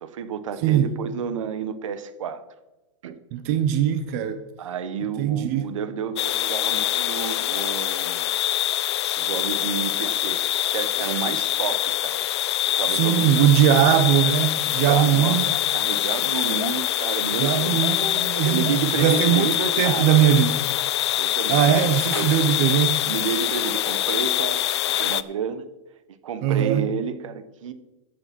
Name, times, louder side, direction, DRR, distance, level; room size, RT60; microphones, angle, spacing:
voice 1, 0.0-2.4 3.0-3.2 4.6-8.3 9.2-12.3 12.7-13.3 14.6-15.3 15.7-17.8 18.4-20.1 21.2-22.3 22.6-22.7 23.0-25.7 26.2-27.7, right 7 dB, 70° right, 1.2 m, -30 dB
voice 2, 0.6-0.9 3.3-4.4 5.2-5.7 12.9-15.5 17.4-20.6 21.5-23.0 26.4-26.9, right 10 dB, 30° right, 0.6 m, -20 dB
sound 1, 6.2-25.2, left 13 dB, 55° left, 0.5 m, -24 dB
14.5 x 6.6 x 6.0 m
supercardioid pair, 175°, 17 cm